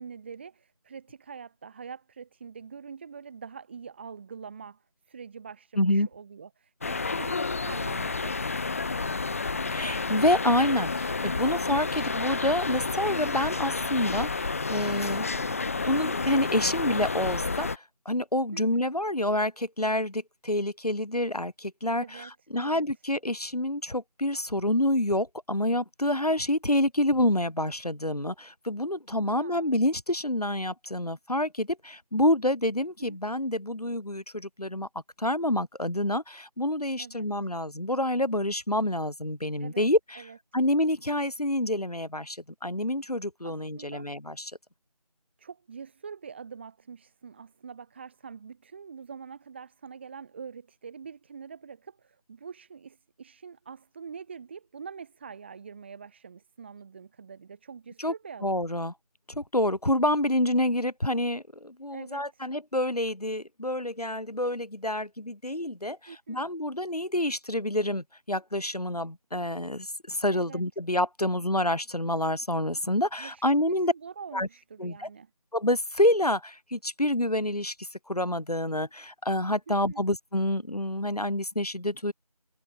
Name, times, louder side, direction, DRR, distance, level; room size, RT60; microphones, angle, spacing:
voice 1, 0.0-8.5 18.5-18.8 22.0-22.8 29.1-29.7 33.0-33.2 37.0-37.3 39.6-39.9 40.1-40.4 43.4-44.1 45.4-58.6 61.9-62.5 66.1-66.4 70.3-70.6 73.2-75.3 79.7-80.0, right 6 dB, 15° right, 6.8 m, -45 dB
voice 2, 5.8-6.1 9.7-15.6 15.8-34.9 35.2-40.2 40.5-44.5 58.0-58.1 58.4-58.9 59.3-73.9 74.3-74.5 74.8-75.1 75.5-82.1, left 1 dB, 75° left, 6.0 m, -28 dB
sound 1, 6.8-17.8, left 4 dB, 20° left, 2.3 m, -30 dB
figure-of-eight pair, 170°, 20 cm